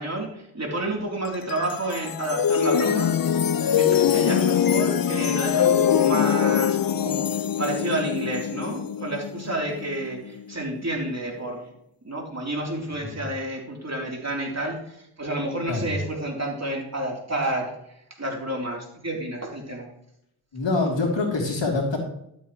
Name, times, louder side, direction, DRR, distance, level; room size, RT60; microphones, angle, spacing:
voice 1, 0.0-3.1 3.7-7.3 7.6-11.7 12.0-17.7 18.2-19.9, right 1 dB, 30° right, -1 dB, 3.6 m, -30 dB
sound 1, 1.2-10.5, left 9 dB, 45° left, 0.6 m, -23 dB
voice 2, 20.5-22.0, left 3 dB, 60° left, 0 dB, 3.3 m, -25 dB
12.5 x 8.0 x 3.2 m, 0.76 s
cardioid pair, 45°, 49 cm